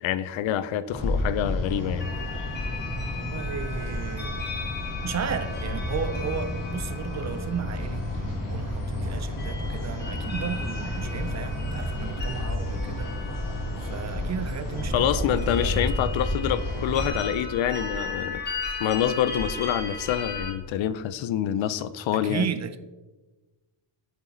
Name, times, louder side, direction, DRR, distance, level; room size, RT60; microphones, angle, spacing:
voice 1, 0.0-2.1 14.9-18.4 18.8-22.5, left 10 dB, 70° left, 0.6 m, -26 dB
sound 1, 0.9-17.1, left 1 dB, 40° left, 2.0 m, -31 dB
sound 2, 2.0-20.5, left 3 dB, 20° left, 1.1 m, -36 dB
voice 2, 3.2-4.4 5.0-8.0 8.5-13.1 13.8-15.8 22.1-22.8, right 7 dB, 35° right, 0.4 m, -34 dB
8.3 x 6.9 x 3.9 m
cardioid pair, 170°, 48 cm